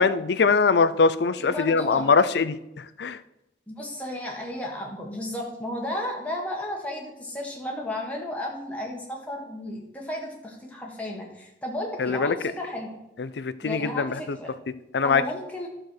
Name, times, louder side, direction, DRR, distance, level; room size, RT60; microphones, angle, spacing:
voice 1, 0.0-3.2 12.0-12.4 13.2-14.4 14.9-15.2, left 4 dB, 65° left, 15 dB, 0.5 m, -22 dB
voice 2, 1.4-2.1 3.7-13.0 13.6-14.5 15.0-15.7, left 1 dB, 10° left, -1 dB, 1.7 m, -33 dB
11.5 x 4.5 x 6.4 m, 0.90 s
head